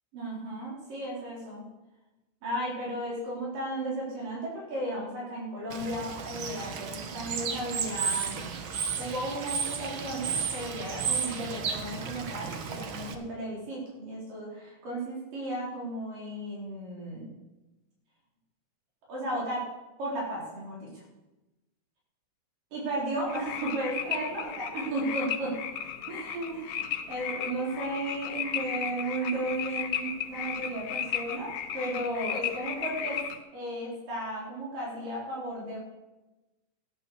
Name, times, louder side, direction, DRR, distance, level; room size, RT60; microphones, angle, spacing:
voice 1, 0.1-1.7 2.4-8.4 9.0-17.3 19.1-19.7 20.0-21.0 22.7-25.6 26.1-33.2 33.5-35.8, right 1 dB, 80° right, -5 dB, 6.1 m, -34 dB
Bird / Water, 5.7-13.1, right 6 dB, 60° right, 1.3 m, -33 dB
sound 1, 23.3-33.4, left 9 dB, 85° left, 2.7 m, -35 dB
14.0 x 9.5 x 6.9 m, 1.0 s
omnidirectional pair, 3.8 m